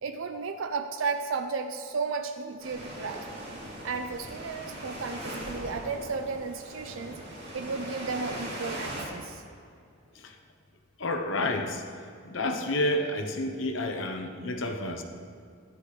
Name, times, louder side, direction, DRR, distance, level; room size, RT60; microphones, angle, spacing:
voice 1, 0.0-3.3 3.8-7.2 7.5-9.4, right 4 dB, 75° right, 7 dB, 0.5 m, -33 dB
sound 1, 2.6-9.0, right 1 dB, 55° right, 2.5 m, -40 dB
voice 2, 11.0-15.0, left 1 dB, 65° left, 5 dB, 0.9 m, -30 dB
13.5 x 10.0 x 3.2 m, 2.4 s
head